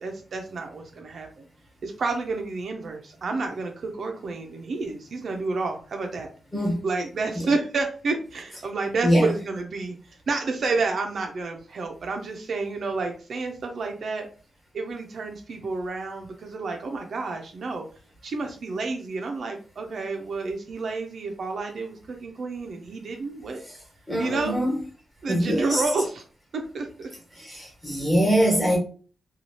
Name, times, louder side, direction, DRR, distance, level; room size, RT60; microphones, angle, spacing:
voice 1, 0.0-1.4 1.8-6.3 6.8-14.3 14.7-17.9 18.2-23.6 24.2-24.6 25.2-26.2 26.5-27.1, right 3 dB, 55° right, 0.5 m, -30 dB
voice 2, 24.1-24.8 25.3-25.8 27.3-28.8, equal, 5° left, 1.3 m, -23 dB
2.9 x 2.3 x 2.7 m
wide cardioid pair, 155°, 0 cm